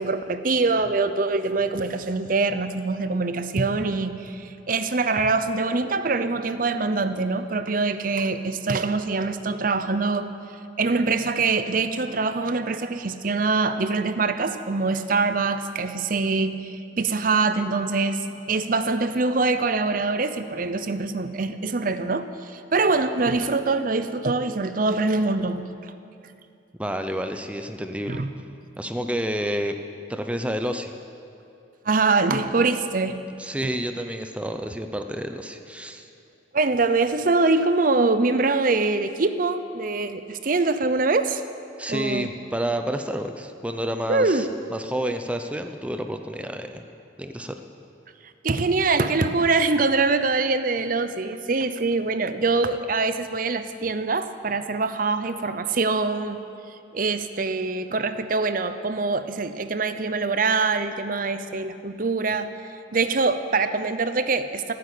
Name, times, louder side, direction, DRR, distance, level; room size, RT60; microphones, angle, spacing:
voice 1, 0.0-10.3 10.8-25.9 28.1-28.3 31.8-33.2 36.5-41.4 41.9-42.3 44.1-44.6 48.4-62.5 62.9-64.7, right 3 dB, 50° right, 11 dB, 0.7 m, -24 dB
voice 2, 26.8-28.2 28.8-29.8 30.1-30.9 33.4-36.1 41.8-46.8 47.2-47.5, equal, 5° right, 7 dB, 0.6 m, -29 dB
15.5 x 9.7 x 8.4 m, 2.5 s
head